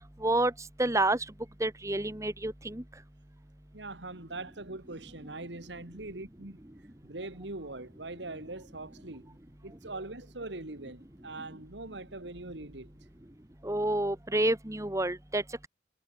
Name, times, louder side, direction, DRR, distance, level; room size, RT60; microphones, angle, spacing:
voice 1, 0.2-0.5 0.8-1.2 1.6-2.8 13.6-15.7, right 2 dB, 15° right, 1.5 m, -28 dB
voice 2, 3.7-6.6 7.0-9.4 9.6-12.9, right 2 dB, 85° right, 2.5 m, -42 dB
head